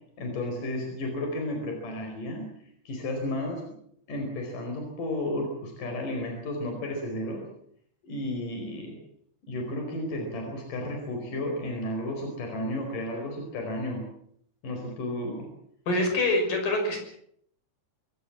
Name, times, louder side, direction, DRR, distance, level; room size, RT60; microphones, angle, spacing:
voice 1, 0.2-2.5 2.9-3.6 4.1-7.4 8.0-9.0 9.5-14.1 14.6-15.5, left 1 dB, 75° left, 3 dB, 6.3 m, -33 dB
voice 2, 15.9-17.0, left 2 dB, 90° left, 4 dB, 7.6 m, -25 dB
25.0 x 17.5 x 7.4 m, 0.67 s
omnidirectional pair, 3.8 m